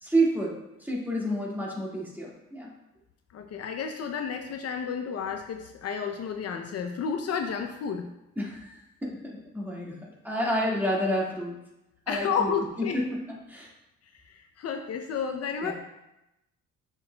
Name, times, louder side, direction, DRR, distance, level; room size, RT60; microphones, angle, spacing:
voice 1, 0.0-2.7 8.4-10.0 10.2-11.5 12.1-12.5 12.8-13.7 15.6-15.7, right 1 dB, 5° right, -4 dB, 1.8 m, -29 dB
voice 2, 3.3-8.1 12.1-13.0 14.1-15.7, left 6 dB, 55° left, 5 dB, 0.6 m, -31 dB
7.3 x 6.2 x 2.2 m, 0.91 s
cardioid pair, 90°, 30 cm